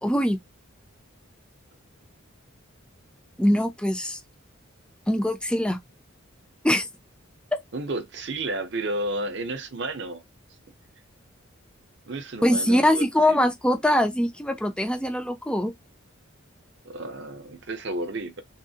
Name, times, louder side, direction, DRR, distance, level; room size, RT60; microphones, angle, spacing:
voice 1, 0.0-0.4 3.4-4.2 5.1-5.8 6.6-6.9 12.4-15.7, left 1 dB, 5° left, 0.4 m, -22 dB
voice 2, 7.7-10.2 12.1-13.5 16.8-18.4, right 2 dB, 55° right, 0.7 m, -32 dB
3.5 x 2.1 x 2.7 m
head